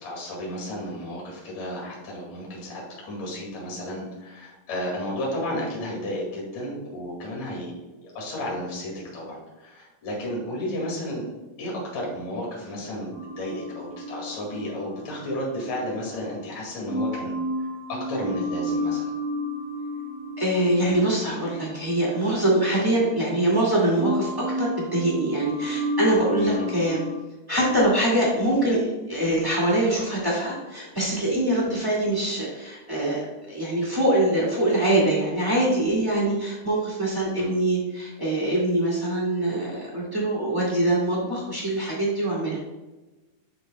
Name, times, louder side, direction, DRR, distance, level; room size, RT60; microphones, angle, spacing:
voice 1, 0.0-7.7 8.1-11.2 11.6-13.1 13.4-17.3 17.9-19.1 26.5-26.7 31.7-31.8 37.4-37.5, left 1 dB, 55° left, -3 dB, 3.2 m, -32 dB
sound 1, 13.1-16.4 16.9-23.7 24.0-27.2, equal, 30° right, 0.3 m, -32 dB
voice 2, 20.4-27.0 27.5-33.2 33.5-42.6, right 1 dB, 10° right, -5 dB, 1.1 m, -24 dB
11.0 x 5.2 x 2.2 m, 1.1 s
omnidirectional pair, 3.7 m